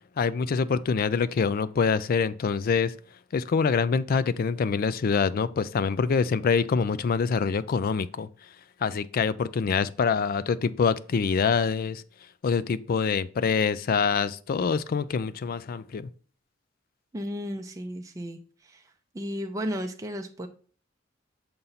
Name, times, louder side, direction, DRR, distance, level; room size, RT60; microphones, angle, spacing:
voice 1, 0.2-2.9 3.3-8.3 8.8-12.0 12.4-16.1, left 5 dB, 50° left, 0.3 m, -25 dB
voice 2, 17.1-18.8 19.1-20.5, equal, 15° right, 0.4 m, -34 dB
6.9 x 2.6 x 5.6 m
head